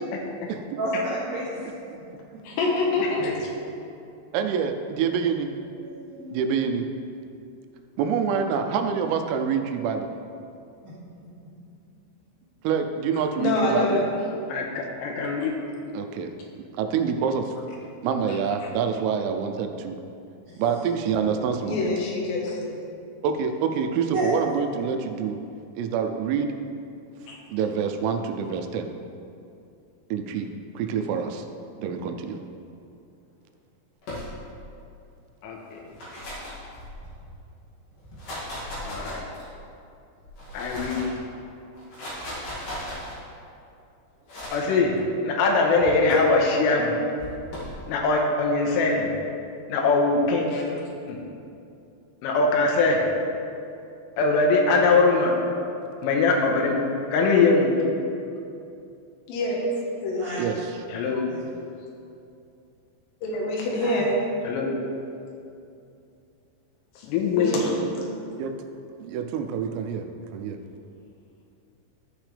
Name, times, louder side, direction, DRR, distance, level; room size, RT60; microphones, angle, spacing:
voice 1, 0.8-1.5 5.8-6.4 10.8-10.9 20.5-20.6 24.1-24.3 60.2-60.5 61.3-61.4 63.8-64.1, right 1 dB, 55° right, -12 dB, 3.0 m, -31 dB
voice 2, 2.4-3.5 13.3-14.1 18.3-18.4 21.6-22.6 27.3-27.4 50.5-50.6 59.3-59.6 60.0-60.3 63.2-64.1 66.9-67.1 67.3-68.0, left 2 dB, 70° left, -2 dB, 3.0 m, -26 dB
voice 3, 4.3-5.5 6.3-6.9 8.0-10.1 12.6-14.0 15.9-16.3 16.8-17.5 18.0-20.0 20.6-21.9 23.2-25.4 25.8-26.5 27.5-28.9 30.1-30.5 30.8-31.3 31.8-32.4 60.4-60.7 61.0-61.1 68.4-68.5 69.0-70.1 70.3-70.6, right 6 dB, 85° right, 6 dB, 3.3 m, -26 dB
voice 4, 14.5-15.6 35.4-35.8 38.9-39.2 40.5-41.0 44.5-44.9 45.2-47.0 47.9-49.1 49.7-50.5 50.8-51.2 52.2-53.0 54.2-55.4 56.0-56.8 57.1-57.8 60.9-61.3 64.5-64.8 67.0-67.7, left 3 dB, 90° left, 0 dB, 3.4 m, -22 dB
sound 1, 34.0-34.7 35.7-37.3 38.0-39.6 40.2-41.2 41.7-43.2 44.3-44.7 45.8-46.1 47.2-47.8, left 1 dB, 50° left, 3.4 m, -37 dB
14.0 x 6.2 x 3.3 m, 2.6 s
omnidirectional pair, 5.8 m